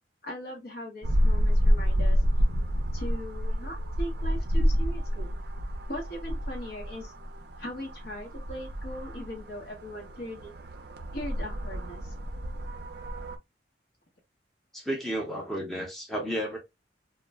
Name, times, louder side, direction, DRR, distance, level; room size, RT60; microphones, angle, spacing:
voice 1, 0.2-2.2 2.9-5.3 5.9-7.1 7.6-10.5 11.1-12.1, equal, 55° left, 1.0 m, -39 dB
sound 1, 1.0-13.4, equal, 55° right, 0.4 m, -29 dB
voice 2, 14.7-16.6, right 1 dB, ahead, 0.6 m, -32 dB
2.3 x 2.0 x 3.4 m
head